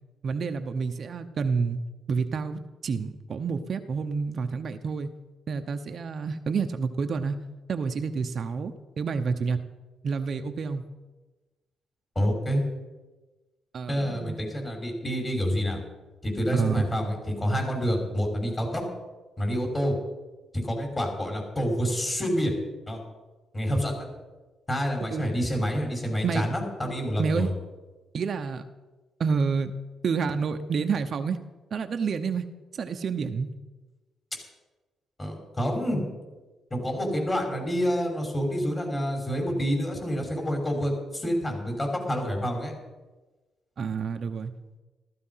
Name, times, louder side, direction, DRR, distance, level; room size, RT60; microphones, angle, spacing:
voice 1, 0.2-1.8 2.1-5.1 5.5-7.4 7.7-9.6 10.0-10.8 13.7-14.4 16.5-16.8 25.0-25.3 26.2-26.5 27.2-27.5 28.1-28.6 29.2-29.7 30.0-31.4 31.7-32.5 32.7-33.5 43.8-44.5, right 5 dB, 50° right, 7 dB, 0.9 m, -29 dB
voice 2, 12.2-12.6 13.9-15.8 16.2-18.8 19.4-20.0 20.5-22.6 22.9-23.0 23.5-24.1 24.7-27.5 35.2-36.0 36.7-42.7, equal, 25° left, 2 dB, 5.6 m, -28 dB
14.5 x 14.5 x 5.8 m, 1.2 s
cardioid pair, 90°, 0 cm